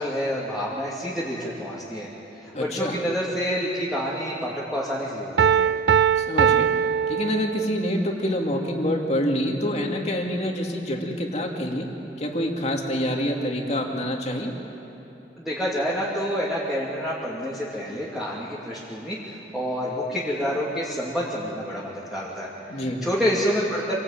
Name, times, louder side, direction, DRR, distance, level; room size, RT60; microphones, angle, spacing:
voice 1, 0.0-2.1 2.4-5.7 15.4-23.9, equal, ahead, -7 dB, 2.7 m, -28 dB
voice 2, 2.5-3.0 6.1-6.7 7.1-11.9 12.2-14.5 22.7-23.0, equal, 40° left, 1 dB, 2.5 m, -26 dB
Piano, 5.4-8.0, right 7 dB, 70° right, 0.5 m, -21 dB
26.0 x 19.5 x 9.0 m, 3.0 s
head